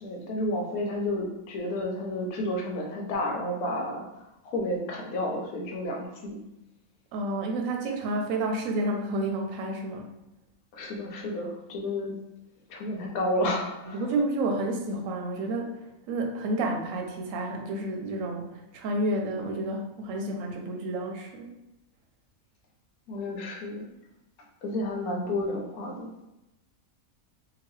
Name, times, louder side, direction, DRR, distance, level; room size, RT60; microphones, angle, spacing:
voice 1, 0.0-4.1 4.4-6.4 10.7-12.1 12.7-14.0 23.1-23.9 24.6-26.1, left 1 dB, 80° left, 0 dB, 1.1 m, -31 dB
voice 2, 7.1-10.1 13.8-15.7 16.1-18.5 18.7-21.5, right 2 dB, 70° right, 2 dB, 0.9 m, -30 dB
2.9 x 2.3 x 3.0 m, 0.94 s
omnidirectional pair, 1.5 m